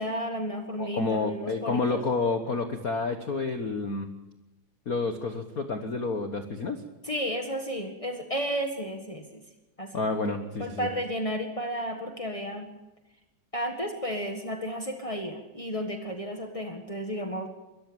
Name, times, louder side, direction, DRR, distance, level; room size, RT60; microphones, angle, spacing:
voice 1, 0.0-2.0 7.0-9.4 9.8-9.9 10.3-12.7 13.5-17.5, equal, 40° left, 3 dB, 0.4 m, -33 dB
voice 2, 0.8-4.1 4.9-6.8 9.9-10.9, left 3 dB, 75° left, 7 dB, 0.8 m, -29 dB
23.0 x 14.5 x 8.7 m, 1.0 s
omnidirectional pair, 3.7 m